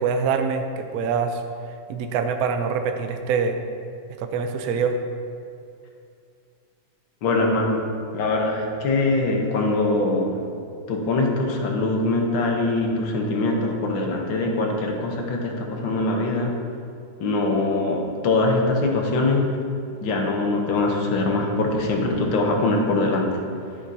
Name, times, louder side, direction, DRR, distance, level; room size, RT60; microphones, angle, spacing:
voice 1, 0.0-1.4 1.9-3.6 4.2-5.0, right 5 dB, 65° right, 6 dB, 0.9 m, -24 dB
voice 2, 7.2-7.8 8.1-10.4 10.9-16.5 17.2-19.5 20.0-23.3, left 2 dB, 90° left, 1 dB, 1.8 m, -22 dB
10.0 x 7.8 x 2.7 m, 2.3 s
omnidirectional pair, 2.1 m